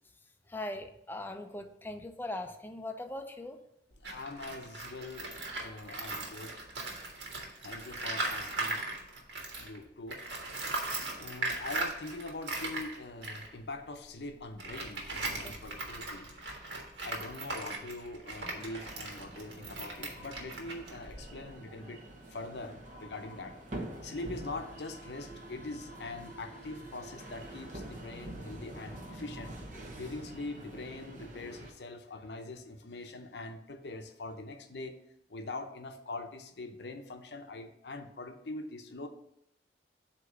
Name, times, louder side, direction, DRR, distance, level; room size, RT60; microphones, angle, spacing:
voice 1, 0.5-3.6 15.4-15.6, left 1 dB, 10° left, 0.5 m, -40 dB
Tools, 3.9-9.8 10.1-21.5, right 2 dB, 90° right, 1.6 m, -39 dB
voice 2, 4.0-5.3 5.6-6.7 7.6-8.8 9.6-10.2 11.2-16.3 17.0-22.0 22.3-23.5 24.0-29.6 30.0-34.9 35.3-39.1, left 2 dB, 70° left, 0.7 m, -43 dB
sound 1, 18.4-31.7, right 1 dB, 45° right, 1.1 m, -46 dB
8.0 x 3.0 x 6.0 m
head